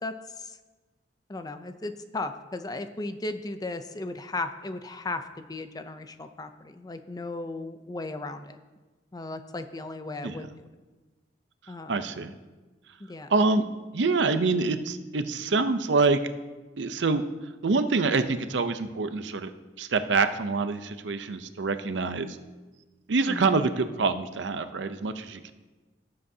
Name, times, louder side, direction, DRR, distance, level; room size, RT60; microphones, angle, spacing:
voice 1, 0.0-0.6 1.3-5.2 5.5-8.6 9.1-10.5 11.7-12.0 13.0-13.3 23.3-23.5, left 2 dB, 20° left, 9 dB, 0.5 m, -36 dB
voice 2, 11.9-12.3 13.3-13.6 13.9-16.2 16.8-17.2 17.6-19.5 19.8-22.4 23.1-25.5, right 4 dB, 80° right, 10 dB, 0.6 m, -26 dB
17.5 x 7.7 x 2.8 m, 1.2 s
head